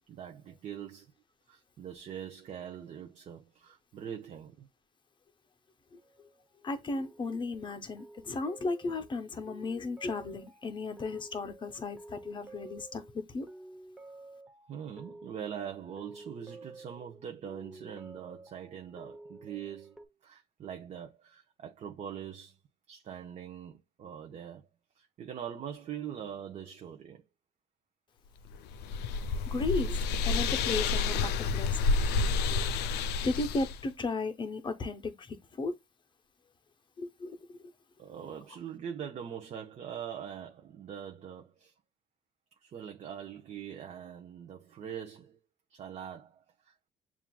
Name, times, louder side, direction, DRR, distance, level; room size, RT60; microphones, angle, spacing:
voice 1, 0.1-1.1 1.5-4.7 14.7-20.0 20.2-22.6 22.9-24.7 24.9-27.2 38.0-41.7 42.6-45.4 45.7-46.9, right 8 dB, 45° right, 0.6 m, -43 dB
sound 1, 6.0-6.6 7.0-20.1, right 2 dB, 5° right, 0.8 m, -52 dB
voice 2, 6.6-13.5 29.5-31.8 33.2-35.8 37.0-37.6, left 3 dB, 30° left, 0.6 m, -35 dB
sound 2, 28.5-33.8, left 4 dB, 80° left, 0.4 m, -29 dB
7.1 x 2.4 x 2.2 m
cardioid pair, 110°, 17 cm